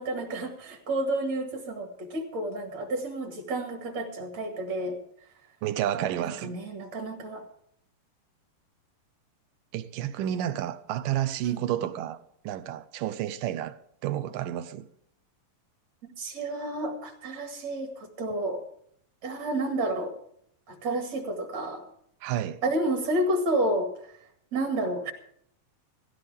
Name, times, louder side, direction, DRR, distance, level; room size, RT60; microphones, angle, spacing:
voice 1, 0.0-5.0 6.2-7.5 11.4-11.6 16.2-18.6 19.2-20.2 20.7-21.9 22.6-24.2 24.5-25.1, right 1 dB, 55° right, 3.0 m, -30 dB
voice 2, 5.6-6.5 9.7-12.2 12.4-13.8 14.0-14.9 22.2-22.6, right 11 dB, 80° right, 2.3 m, -30 dB
17.0 x 15.5 x 3.5 m
omnidirectional pair, 4.0 m